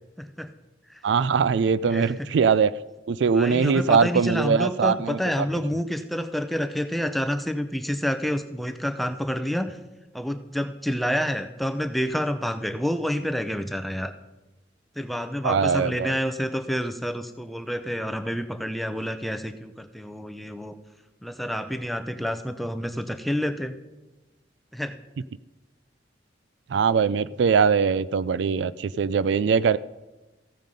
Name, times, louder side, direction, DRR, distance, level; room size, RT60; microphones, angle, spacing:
voice 1, 0.2-0.5 1.9-2.3 3.3-9.8 10.1-14.1 15.0-20.7 21.2-23.7 24.7-25.0, equal, ahead, 8 dB, 0.6 m, -28 dB
voice 2, 1.0-2.7 3.1-5.5 15.4-16.2 26.7-29.8, right 6 dB, 70° right, 18 dB, 0.3 m, -22 dB
14.5 x 9.2 x 5.3 m, 1.1 s
head